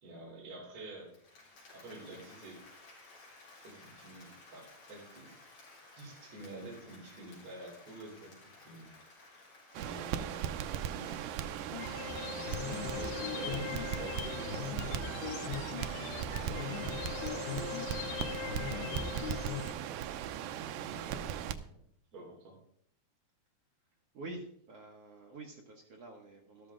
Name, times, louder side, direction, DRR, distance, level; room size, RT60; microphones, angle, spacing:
voice 1, 0.0-1.1 1.7-2.6 3.6-5.4 6.0-8.3 8.6-8.9 9.8-12.0 12.6-15.6 16.3-17.8 18.7-19.4 20.4-21.8 22.1-22.6, right 2 dB, 45° right, -4 dB, 4.6 m, -49 dB
Applause, 1.0-14.0, left 2 dB, 50° left, 5.1 m, -57 dB
Crackle, 9.7-21.5, right 10 dB, 90° right, 1.8 m, -38 dB
sound 1, 11.7-19.7, left 9 dB, 75° left, 2.5 m, -40 dB
voice 2, 24.1-26.7, right 2 dB, 75° right, 0 dB, 1.4 m, -47 dB
12.5 x 12.5 x 3.8 m, 0.67 s
omnidirectional pair, 4.5 m